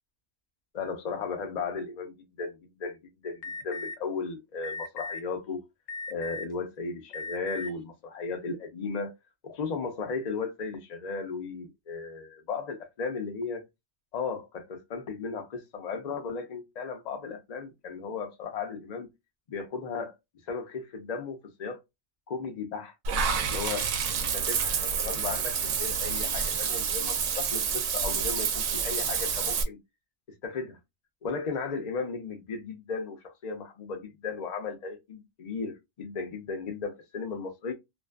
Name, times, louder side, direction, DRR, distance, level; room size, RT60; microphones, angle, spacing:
voice 1, 0.7-3.0 3.2-5.6 6.1-9.1 9.4-13.6 14.1-19.1 19.5-20.1 20.5-21.8 22.3-22.9 23.5-29.8 30.4-30.8 31.2-37.7, left 4 dB, 45° left, 0.6 m, -35 dB
Alarm, 3.4-3.9 4.6-5.2 5.9-6.5 7.1-7.7, left 4 dB, 80° left, 0.9 m, -37 dB
Water / Bathtub (filling or washing), 23.0-29.6, right 6 dB, 90° right, 0.9 m, -28 dB
2.5 x 2.4 x 2.2 m
omnidirectional pair, 1.2 m